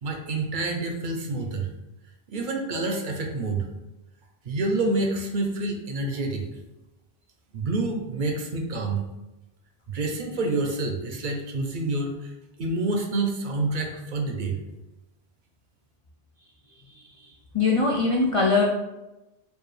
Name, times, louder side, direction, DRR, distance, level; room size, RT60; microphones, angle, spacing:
voice 1, 0.0-1.7 2.3-3.7 4.4-6.5 7.5-9.0 9.9-12.3 12.6-14.6, right 2 dB, 60° right, 3 dB, 0.6 m, -28 dB
voice 2, 16.9-17.3 17.5-18.6, left 3 dB, 55° left, -1 dB, 0.3 m, -22 dB
4.5 x 2.4 x 3.1 m, 1.0 s
omnidirectional pair, 1.0 m